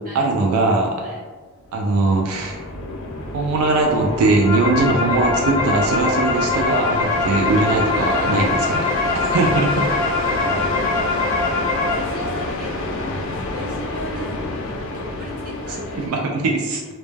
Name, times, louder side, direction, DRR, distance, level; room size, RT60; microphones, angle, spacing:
voice 1, 0.1-1.1 1.7-2.6 3.3-8.6 9.3-9.8 16.0-16.8, right 3 dB, 80° right, 0 dB, 0.3 m, -20 dB
sound 1, 1.6-16.1, left 2 dB, 60° left, 0.3 m, -28 dB
sound 2, 4.1-11.9, left 3 dB, 10° left, 0.5 m, -23 dB
voice 2, 7.9-8.5 9.6-16.5, equal, 40° right, -5 dB, 0.6 m, -36 dB
2.0 x 2.0 x 3.2 m, 1.4 s
head